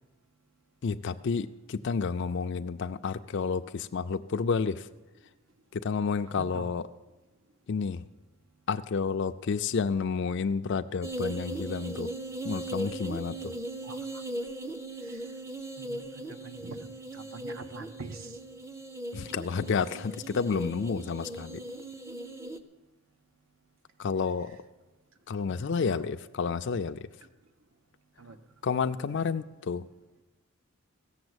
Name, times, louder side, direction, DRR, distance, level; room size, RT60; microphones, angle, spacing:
voice 1, 0.8-4.9 5.7-6.9 7.7-8.1 8.7-12.1 12.4-13.6 19.1-21.6 24.0-24.6 25.3-27.1 28.6-29.8, left 5 dB, 55° left, 8 dB, 0.4 m, -30 dB
voice 2, 6.3-6.7 13.8-14.2 15.0-15.2 15.8-16.9 17.1-18.4 25.5-26.0 28.2-28.4, right 3 dB, 65° right, 9 dB, 0.9 m, -44 dB
sound 1, 11.0-22.6, right 1 dB, 15° right, 0.6 m, -38 dB
16.0 x 7.0 x 7.9 m, 1.2 s
head